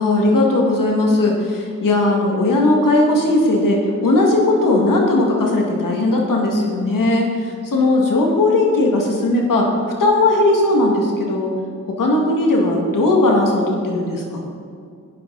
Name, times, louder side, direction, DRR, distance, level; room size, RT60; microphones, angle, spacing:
voice 1, 0.0-9.7 10.0-11.5 12.0-14.4, left 2 dB, 85° left, 0 dB, 2.1 m, -17 dB
13.0 x 9.4 x 4.0 m, 2.3 s
cardioid pair, 40°, 32 cm